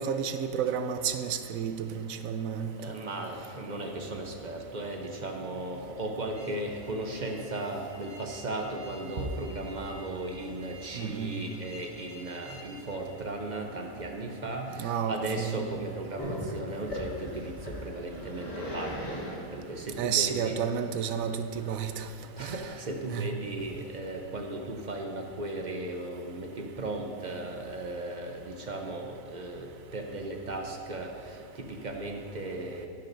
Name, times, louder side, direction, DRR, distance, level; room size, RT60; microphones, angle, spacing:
voice 1, 0.0-2.8 10.9-11.4 14.8-15.6 20.0-22.1 22.4-22.6 23.1-23.3, right 8 dB, 75° right, 9 dB, 1.0 m, -31 dB
voice 2, 2.8-20.6 22.4-32.9, right 2 dB, 40° right, 2 dB, 0.7 m, -36 dB
sound 1, 6.3-12.9, equal, 20° right, 1.6 m, -51 dB
Growling, 16.2-22.0, equal, 45° left, 2.1 m, -39 dB
11.5 x 10.5 x 2.6 m, 2.8 s
omnidirectional pair, 1.5 m